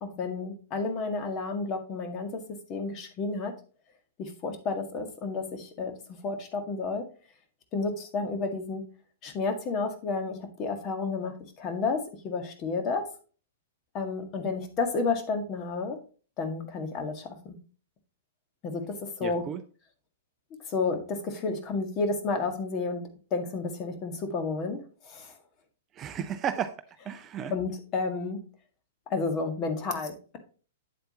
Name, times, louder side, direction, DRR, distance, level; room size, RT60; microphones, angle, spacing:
voice 1, 0.0-2.4 2.7-3.5 4.2-7.0 7.7-8.8 9.2-13.0 13.9-16.0 16.4-17.6 18.6-19.4 20.7-23.0 23.3-25.3 27.5-28.4 29.1-30.4, left 4 dB, 30° left, 1.8 m, -31 dB
voice 2, 19.2-19.6 25.9-27.5, right 8 dB, 25° right, 0.6 m, -34 dB
8.6 x 7.8 x 2.9 m
figure-of-eight pair, 105°, 0 cm